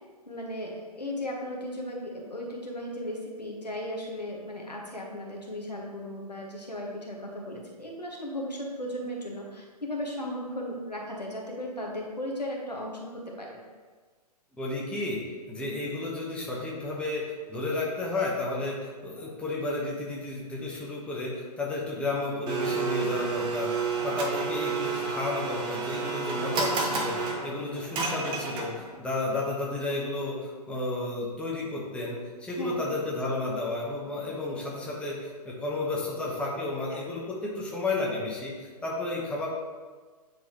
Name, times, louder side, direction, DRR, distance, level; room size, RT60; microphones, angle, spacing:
voice 1, 0.3-13.6 15.6-15.7 32.5-32.8 36.9-37.0, left 1 dB, 90° left, -2 dB, 1.5 m, -36 dB
voice 2, 14.6-15.2 15.5-39.5, left 2 dB, 5° left, -4 dB, 1.0 m, -32 dB
Domestic sounds home sounds, 22.5-29.0, right 4 dB, 20° right, 0.9 m, -30 dB
9.2 x 4.0 x 3.1 m, 1.4 s
figure-of-eight pair, 120°, 20 cm